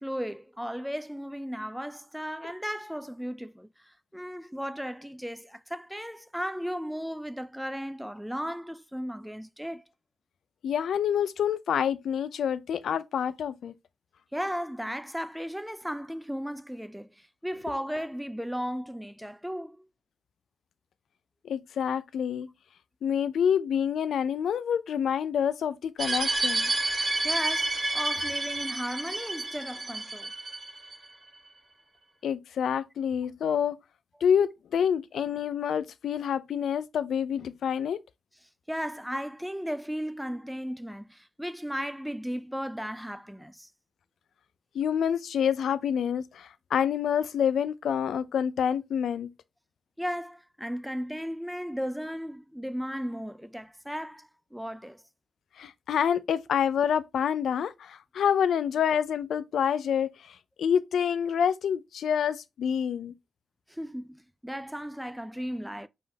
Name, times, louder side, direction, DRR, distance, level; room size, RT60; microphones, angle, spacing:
voice 1, 0.0-9.8 14.3-19.8 27.2-30.3 38.7-43.7 50.0-55.0 63.7-65.9, equal, 5° right, 0.4 m, -35 dB
voice 2, 10.6-13.7 21.4-22.5 23.0-26.7 32.2-33.8 34.2-38.0 44.7-49.3 55.6-63.1, left 8 dB, 75° left, 0.4 m, -27 dB
sound 1, 26.0-31.0, right 2 dB, 40° right, 1.9 m, -29 dB
5.2 x 3.6 x 2.8 m
supercardioid pair, 45°, 0 cm